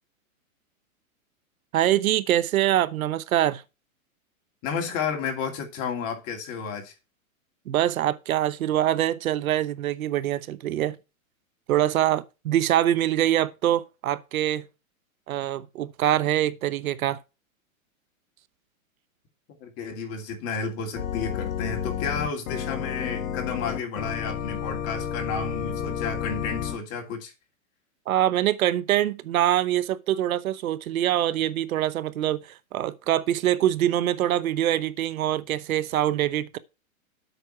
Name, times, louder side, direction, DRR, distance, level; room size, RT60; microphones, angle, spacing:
voice 1, 1.7-3.6 7.7-11.0 11.7-14.6 15.3-17.2 28.1-32.4 32.7-36.6, right 12 dB, 75° right, 0.9 m, -24 dB
voice 2, 4.6-6.9 19.6-27.3, left 5 dB, 35° left, 2.4 m, -32 dB
Organ, 21.0-26.8, left 9 dB, 70° left, 1.5 m, -31 dB
8.0 x 6.0 x 5.9 m
hypercardioid pair, 135°, 42 cm